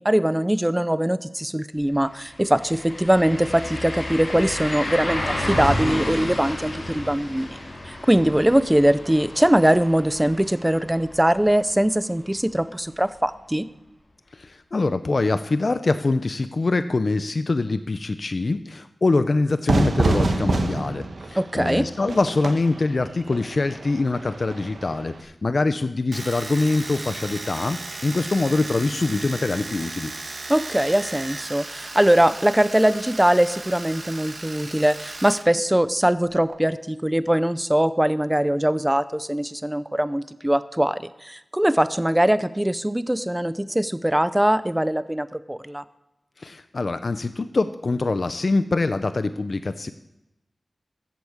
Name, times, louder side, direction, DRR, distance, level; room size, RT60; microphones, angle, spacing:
voice 1, 0.0-7.5 7.8-13.7 21.3-21.9 30.5-45.8, right 1 dB, 10° right, 13 dB, 0.7 m, -21 dB
sound 1, 1.8-1.9 2.2-12.0 12.4-12.5 15.2-15.3, left 1 dB, 85° left, 5.6 m, -31 dB
voice 2, 14.3-30.1 46.4-49.9, left 3 dB, 55° left, 10 dB, 0.6 m, -24 dB
Fire / Fireworks, 19.7-25.2, right 3 dB, 85° right, 1.2 m, -26 dB
Domestic sounds home sounds, 26.1-35.5 35.7-36.6, right 3 dB, 60° right, 1.3 m, -36 dB
14.5 x 8.3 x 7.3 m, 0.92 s
wide cardioid pair, 80°, 0 cm